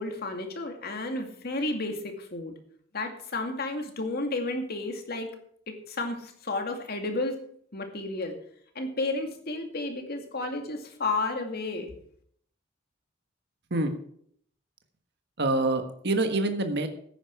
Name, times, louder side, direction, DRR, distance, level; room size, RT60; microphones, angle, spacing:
voice 1, 0.0-2.5 2.9-5.3 5.7-7.4 7.7-8.3 8.7-11.9, left 2 dB, 55° left, 4 dB, 2.3 m, -32 dB
voice 2, 15.4-16.9, right 2 dB, 60° right, 6 dB, 1.5 m, -26 dB
14.0 x 10.0 x 4.7 m, 0.64 s
head